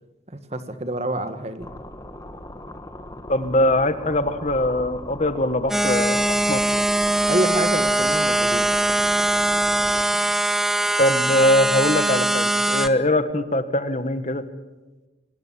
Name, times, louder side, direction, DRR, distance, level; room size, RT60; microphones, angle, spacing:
voice 1, 0.3-1.7 7.3-8.9, right 1 dB, 35° right, 9 dB, 1.7 m, -27 dB
sound 1, 1.6-10.1, left 1 dB, 20° left, 1.6 m, -39 dB
voice 2, 3.3-6.6 11.0-14.4, left 1 dB, 40° left, 10 dB, 1.6 m, -22 dB
sound 2, 5.7-12.9, right 1 dB, ahead, 0.9 m, -21 dB
27.0 x 19.0 x 7.6 m, 1.2 s
head